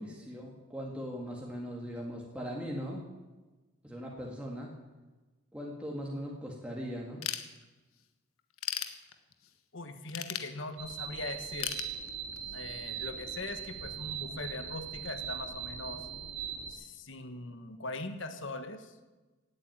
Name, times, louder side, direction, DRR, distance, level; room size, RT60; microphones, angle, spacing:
voice 1, 0.0-3.0 3.8-4.7 5.5-7.2, equal, 5° right, -2 dB, 2.0 m, -39 dB
Ratchet pawl / Tools, 7.2-8.0 8.4-9.5 10.1-11.1 11.6-12.6, left 10 dB, 85° left, 1.3 m, -37 dB
voice 2, 9.7-11.7 12.5-16.1 16.7-18.9, left 2 dB, 60° left, 8 dB, 1.5 m, -41 dB
sound 1, 10.8-16.7, right 8 dB, 65° right, 3.8 m, -40 dB
17.0 x 8.9 x 9.2 m, 1.2 s
head